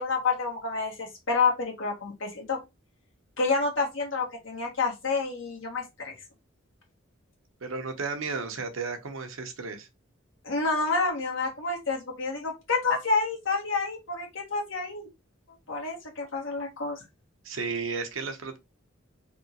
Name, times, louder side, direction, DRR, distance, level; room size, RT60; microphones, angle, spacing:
voice 1, 0.0-2.6 3.4-6.1 10.4-15.1 15.7-17.0, left 4 dB, 75° left, 1.5 m, -29 dB
voice 2, 7.6-9.9 17.4-18.6, right 4 dB, 85° right, 0.8 m, -33 dB
3.5 x 2.8 x 2.8 m
head